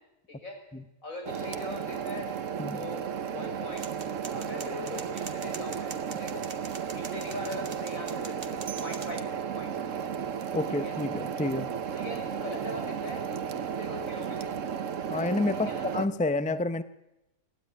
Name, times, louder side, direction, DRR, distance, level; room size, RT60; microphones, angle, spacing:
voice 1, 1.0-2.3 2.7-3.9 4.3-5.9 6.2-6.4 6.8-9.2 9.5-10.1 10.8-10.9 11.9-13.4 13.8-14.6 15.6-15.9, left 2 dB, 65° left, 2 dB, 5.8 m, -41 dB
Forge - Coal burning with fan on, 1.2-16.1, right 7 dB, 60° right, 1.3 m, -34 dB
sound 1, 3.8-9.2, right 5 dB, 40° right, 1.5 m, -44 dB
voice 2, 10.5-11.7 15.1-16.8, left 2 dB, 10° left, 12 dB, 0.3 m, -29 dB
21.0 x 15.5 x 9.8 m, 0.95 s
omnidirectional pair, 1.5 m